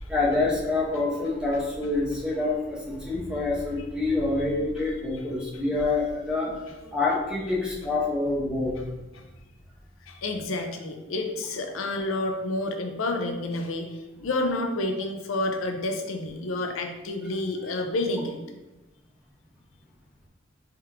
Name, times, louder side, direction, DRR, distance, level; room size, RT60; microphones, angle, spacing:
voice 1, 0.1-6.5 6.9-8.8, left 2 dB, 5° right, -4 dB, 0.8 m, -26 dB
voice 2, 10.0-18.4, left 2 dB, 85° left, 3 dB, 0.5 m, -29 dB
3.5 x 3.0 x 3.4 m, 1.0 s
head